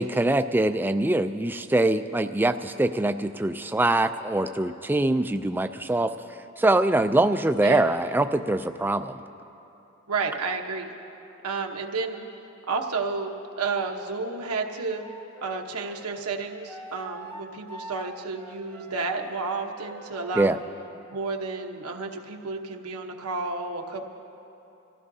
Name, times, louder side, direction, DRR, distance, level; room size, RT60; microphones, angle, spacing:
voice 1, 0.0-6.1 6.6-9.2 20.4-20.6, right 2 dB, 10° right, 10 dB, 0.3 m, -23 dB
voice 2, 10.1-10.9 11.4-12.2 12.7-15.0 15.4-20.6 21.1-24.0, right 4 dB, 85° right, 2 dB, 1.1 m, -31 dB
Wind instrument woodwind instrument, 15.0-20.4, right 1 dB, 10° left, 0.8 m, -45 dB
26.0 x 15.5 x 2.7 m, 2.9 s
head